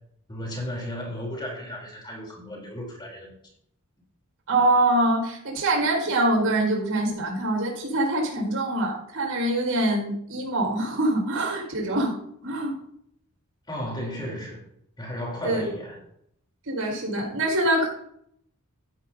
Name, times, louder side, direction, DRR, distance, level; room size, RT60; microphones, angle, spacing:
voice 1, 0.3-3.3 13.7-14.6 15.0-16.0, equal, 20° left, 3.8 m, -34 dB
voice 2, 4.5-12.1 12.4-12.8 15.4-15.7 16.7-17.9, right 1 dB, 80° right, 5.1 m, -24 dB
15.0 x 12.5 x 2.8 m
head